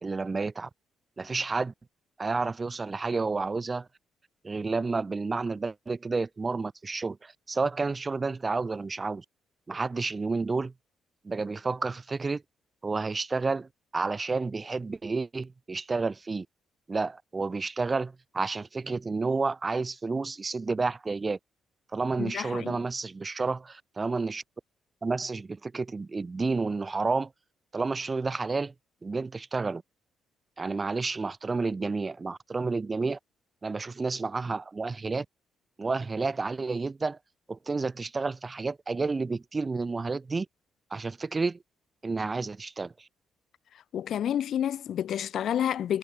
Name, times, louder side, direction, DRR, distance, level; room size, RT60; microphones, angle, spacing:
voice 1, 0.0-0.7 1.2-1.7 2.2-3.9 4.4-9.2 9.7-10.7 11.2-12.4 12.8-16.5 16.9-21.4 21.9-24.4 25.0-27.3 27.7-28.7 29.0-29.8 30.6-33.2 33.6-35.3 35.8-37.2 37.5-40.5 40.9-41.6 42.0-43.1, right 4 dB, 30° right, 1.8 m, -30 dB
voice 2, 22.2-22.8 43.9-46.0, left 10 dB, 65° left, 0.4 m, -29 dB
cardioid pair, 75°, 0 cm